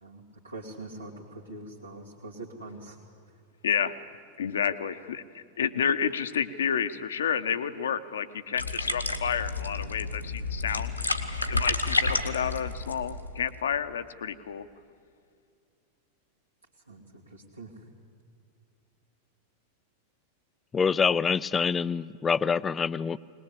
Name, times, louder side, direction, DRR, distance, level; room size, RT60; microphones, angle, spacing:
voice 1, 0.0-3.0 16.9-17.9, right 2 dB, 80° right, -5 dB, 2.4 m, -43 dB
voice 2, 3.6-3.9 4.4-11.0 11.5-14.7, left 7 dB, 65° left, 11 dB, 0.9 m, -30 dB
sound 1, 8.6-13.6, left 3 dB, 85° left, 1.5 m, -30 dB
voice 3, 20.7-23.2, left 6 dB, 20° left, 18 dB, 0.5 m, -26 dB
21.5 x 20.0 x 8.4 m, 2.4 s
figure-of-eight pair, 90°, 0 cm